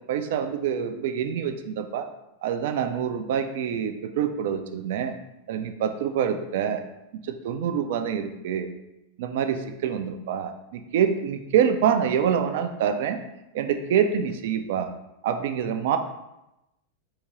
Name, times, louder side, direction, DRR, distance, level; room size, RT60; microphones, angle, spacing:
voice 1, 0.1-2.1 2.4-5.1 5.5-6.8 7.3-8.7 9.2-13.2 13.5-14.9 15.2-16.0, right 8 dB, 55° right, 7 dB, 0.3 m, -26 dB
3.7 x 2.5 x 3.1 m, 0.92 s
figure-of-eight pair, 90°, 0 cm